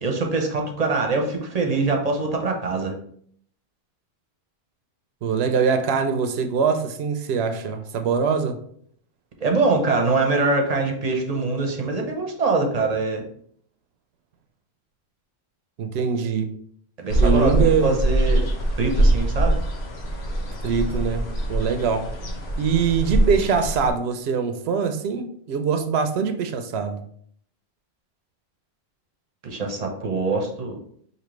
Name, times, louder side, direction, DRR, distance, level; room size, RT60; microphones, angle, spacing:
voice 1, 0.0-3.0 9.4-13.2 17.0-18.4 18.8-19.6 29.4-30.8, right 3 dB, 45° right, 2 dB, 0.8 m, -23 dB
voice 2, 5.2-8.6 15.8-16.5 17.2-18.0 20.6-22.1 22.6-27.0, right 6 dB, 80° right, 8 dB, 0.8 m, -23 dB
sound 1, 17.1-23.9, right 1 dB, 90° left, 1.1 m, -23 dB
5.1 x 2.8 x 3.1 m, 0.62 s
omnidirectional pair, 1.0 m